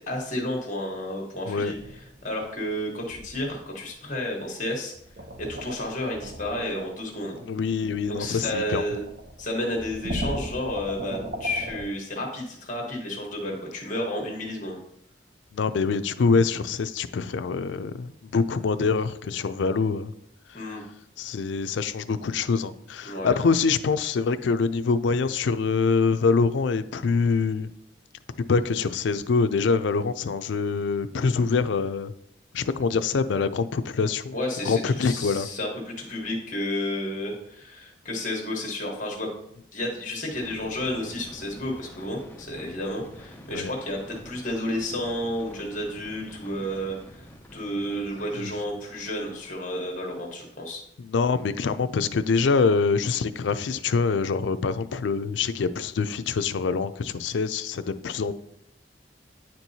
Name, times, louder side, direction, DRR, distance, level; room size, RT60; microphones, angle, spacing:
voice 1, 0.0-1.8 2.2-4.9 5.4-7.3 8.1-9.0 9.4-14.8 20.5-20.8 23.1-23.3 34.3-39.3 39.7-50.8, left 1 dB, 40° left, 0 dB, 1.2 m, -31 dB
sound 1, 1.7-2.8 3.1-3.8 4.9-11.8, right 1 dB, 50° right, 0.7 m, -38 dB
voice 2, 7.4-8.8 15.5-20.1 20.5-20.6 21.2-27.7 28.4-32.1 32.5-34.3 34.6-35.5 43.5-43.7 48.4-48.5 51.0-58.3, left 4 dB, 75° left, 12 dB, 0.4 m, -25 dB
sound 2, 40.3-49.5, left 1 dB, 10° left, 0.4 m, -47 dB
9.5 x 4.5 x 2.7 m, 0.71 s
head